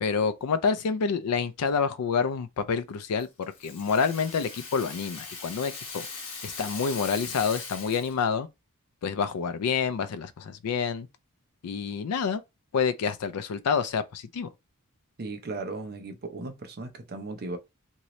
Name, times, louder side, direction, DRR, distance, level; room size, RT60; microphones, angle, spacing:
voice 1, 0.0-6.1 6.4-8.5 9.0-11.1 11.6-12.4 12.7-14.5, left 6 dB, 80° left, 0.4 m, -28 dB
Rattle (instrument), 3.2-8.3, left 4 dB, 65° left, 1.2 m, -40 dB
voice 2, 15.2-17.6, right 3 dB, 45° right, 0.7 m, -36 dB
2.9 x 2.7 x 3.1 m
head